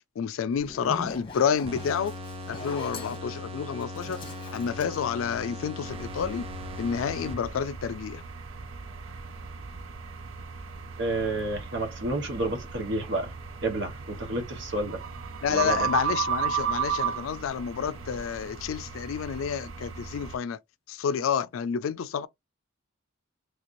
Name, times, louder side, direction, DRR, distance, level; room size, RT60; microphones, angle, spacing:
voice 1, 0.2-2.1 2.5-4.2 4.5-6.5 6.8-8.2 15.4-20.6 20.9-22.3, left 7 dB, 85° left, 0.3 m, -29 dB
Zipper (clothing), 0.5-5.8, left 3 dB, 25° left, 0.9 m, -42 dB
sound 1, 1.7-7.8, left 2 dB, 30° right, 0.6 m, -39 dB
sound 2, 5.8-20.4, right 7 dB, 90° right, 0.5 m, -35 dB
voice 2, 11.0-13.3 13.6-15.0 15.5-15.9, right 2 dB, 60° right, 1.2 m, -30 dB
3.3 x 3.0 x 2.5 m
head